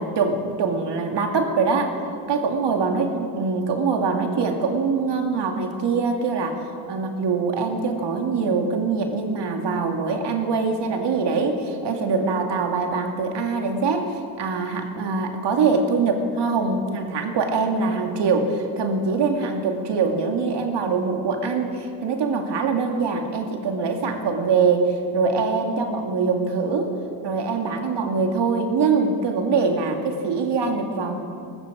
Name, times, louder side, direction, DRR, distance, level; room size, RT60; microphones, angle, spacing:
voice 1, 0.0-1.9 2.3-26.9 27.2-31.2, right 4 dB, 60° right, 3 dB, 2.4 m, -23 dB
19.5 x 14.5 x 5.1 m, 2.4 s
hypercardioid pair, 45°, 46 cm